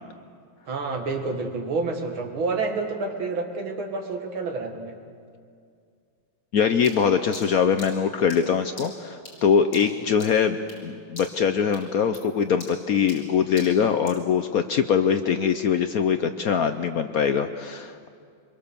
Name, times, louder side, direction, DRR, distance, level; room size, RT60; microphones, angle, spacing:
voice 1, 0.7-4.9, right 3 dB, 85° right, 4 dB, 2.7 m, -29 dB
voice 2, 6.5-18.1, left 7 dB, 65° left, 8 dB, 0.9 m, -23 dB
sound 1, 6.8-10.9 11.2-11.5 11.7-14.3, left 2 dB, 85° left, 5.6 m, -44 dB
25.0 x 22.5 x 6.9 m, 2.3 s
omnidirectional pair, 2.2 m